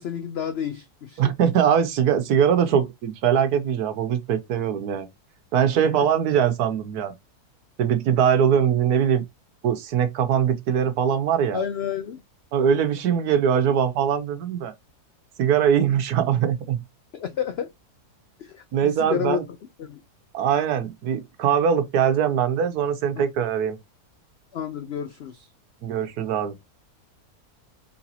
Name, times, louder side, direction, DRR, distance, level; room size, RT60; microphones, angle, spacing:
voice 1, 0.0-1.3 5.9-6.0 11.5-12.2 17.1-17.7 18.4-19.4 19.8-20.0 24.5-25.5, left 9 dB, 85° left, 0.5 m, -30 dB
voice 2, 1.2-5.1 5.5-7.1 7.8-9.2 9.6-11.6 12.5-14.7 15.4-16.8 18.7-19.4 20.3-23.8 25.8-26.5, right 8 dB, 75° right, 1.3 m, -22 dB
4.2 x 3.2 x 2.7 m
omnidirectional pair, 1.7 m